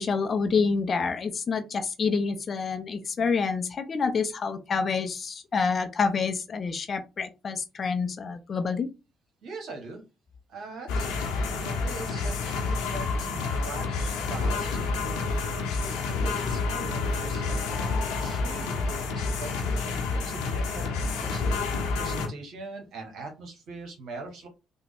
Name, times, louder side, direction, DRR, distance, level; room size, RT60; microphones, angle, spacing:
voice 1, 0.0-8.9, left 5 dB, 45° left, 8 dB, 0.5 m, -27 dB
voice 2, 9.4-10.0 10.5-11.4 11.6-15.1 15.7-21.4 22.0-24.5, right 3 dB, 65° right, 3 dB, 1.1 m, -42 dB
sound 1, 10.9-22.3, left 3 dB, 75° left, 0.8 m, -29 dB
3.5 x 2.2 x 3.4 m, 0.27 s
hypercardioid pair, 50°, 0 cm